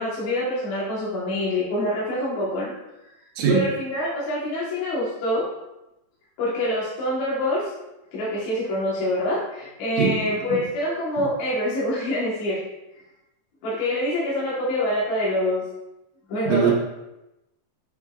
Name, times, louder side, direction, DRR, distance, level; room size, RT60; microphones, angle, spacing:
voice 1, 0.0-2.7 3.5-5.5 6.4-7.7 8.1-12.6 13.6-15.6 16.3-16.7, left 1 dB, 60° left, -7 dB, 2.4 m, -25 dB
voice 2, 3.4-3.7 10.0-10.2 10.5-10.6 16.5-16.7, right 6 dB, 70° right, -1 dB, 2.3 m, -21 dB
7.2 x 6.1 x 2.4 m, 0.94 s
omnidirectional pair, 4.2 m